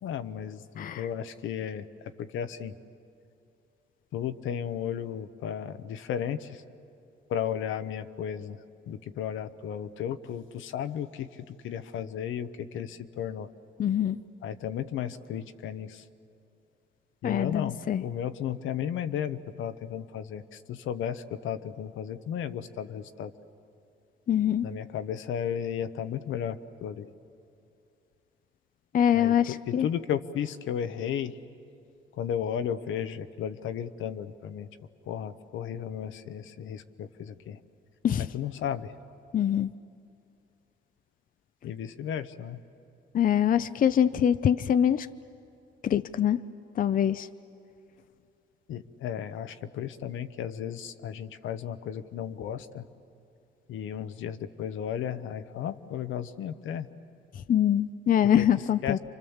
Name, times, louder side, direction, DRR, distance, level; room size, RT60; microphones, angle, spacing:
voice 1, 0.0-2.7 4.1-6.6 7.3-8.6 8.9-13.5 14.4-16.0 17.2-23.3 24.6-27.1 29.1-31.4 32.1-34.7 35.0-37.6 38.2-39.0 41.6-42.6 48.7-52.9 53.7-56.9 58.3-58.5 58.8-59.0, left 9 dB, 80° left, 10 dB, 0.9 m, -34 dB
voice 2, 0.8-1.1 13.8-14.2 17.2-18.0 24.3-24.7 28.9-29.9 38.0-38.3 39.3-39.7 43.1-45.1 45.8-46.4 46.8-47.3 57.3-59.0, left 9 dB, 45° left, 12 dB, 0.5 m, -24 dB
29.0 x 25.0 x 7.2 m, 2.6 s
cardioid pair, 90°, 20 cm